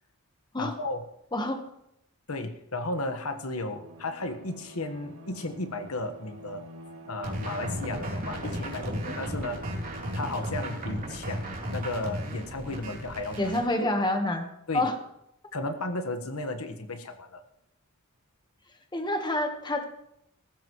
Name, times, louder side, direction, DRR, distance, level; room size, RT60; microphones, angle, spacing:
voice 1, 0.6-1.0 2.3-6.6 7.0-9.9 10.1-13.9 14.7-14.9 15.5-17.4, left 2 dB, 90° left, 7 dB, 1.4 m, -34 dB
Bowed string instrument, 3.6-12.1, left 1 dB, 80° right, 2.1 m, -46 dB
sound 1, 7.2-13.6, right 1 dB, 40° right, 3.3 m, -35 dB
voice 2, 13.4-14.5 14.7-14.9 18.9-19.8, left 1 dB, 20° left, 5 dB, 1.3 m, -27 dB
19.0 x 15.0 x 3.2 m, 0.81 s
head